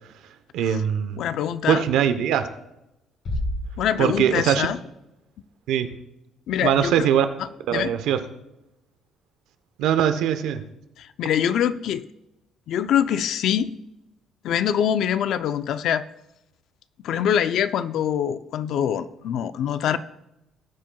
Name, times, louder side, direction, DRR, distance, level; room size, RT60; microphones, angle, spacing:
voice 1, 0.5-1.2 1.7-2.5 4.0-4.7 5.7-5.9 6.6-7.3 7.7-8.2 9.8-10.6, right 9 dB, 85° right, 9 dB, 0.9 m, -21 dB
voice 2, 1.2-1.8 3.8-4.8 6.5-7.1 7.7-7.9 11.0-12.1 12.7-13.8 14.4-16.1 17.0-20.0, left 9 dB, 65° left, 12 dB, 0.5 m, -24 dB
Bass drum, 3.2-4.7, left 1 dB, 45° left, 3.2 m, -30 dB
20.0 x 7.5 x 2.3 m, 0.92 s
cardioid pair, 135°, 0 cm